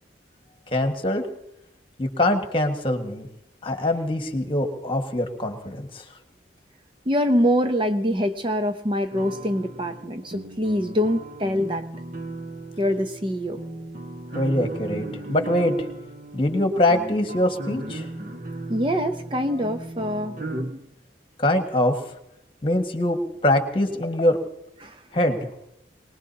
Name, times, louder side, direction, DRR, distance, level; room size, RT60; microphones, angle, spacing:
voice 1, 0.7-1.2 2.0-3.3 3.6-6.0 14.3-15.9 16.3-18.1 21.4-22.0 22.6-24.4 25.1-25.6, left 1 dB, 30° left, 5 dB, 1.7 m, -23 dB
voice 2, 7.1-11.9 12.8-13.6 18.7-20.9 24.8-25.0, equal, 25° right, 7 dB, 0.7 m, -24 dB
sound 1, 9.1-20.6, right 2 dB, 45° right, 1.5 m, -36 dB
23.0 x 20.0 x 2.8 m, 0.88 s
head